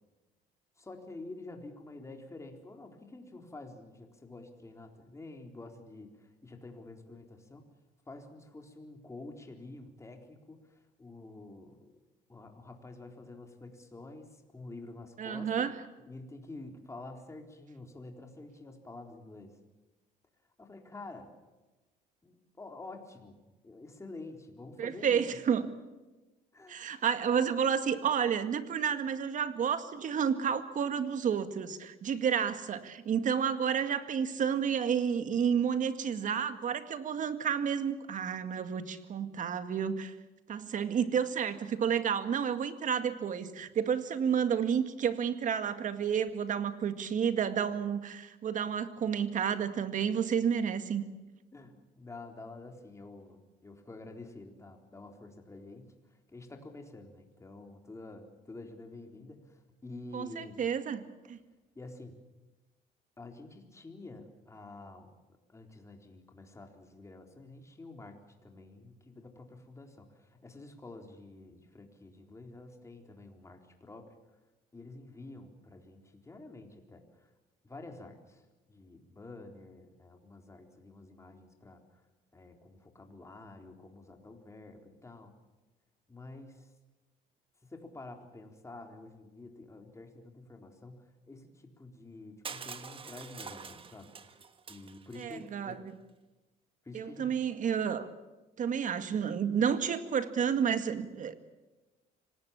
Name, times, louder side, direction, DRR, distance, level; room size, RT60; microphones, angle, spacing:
voice 1, 0.8-7.7 8.1-12.0 12.3-15.7 16.1-19.6 20.6-21.4 22.2-25.2 26.5-26.8 51.5-60.6 61.8-62.2 63.2-65.2 65.5-74.1 74.7-77.3 77.6-78.4 78.7-82.0 82.3-85.3 86.1-86.7 87.6-94.1 94.7-95.8 96.8-97.5, left 2 dB, 15° left, 3 dB, 4.0 m, -49 dB
voice 2, 15.2-15.8 24.8-25.7 26.7-40.1 40.5-51.0 60.1-61.4 95.2-95.9 96.9-98.1 98.6-101.3, right 7 dB, 50° right, 10 dB, 2.0 m, -30 dB
Crushing, 92.4-95.4, right 5 dB, 30° right, 1.5 m, -46 dB
25.5 x 19.0 x 7.2 m, 1.1 s
cardioid pair, 110°, 17 cm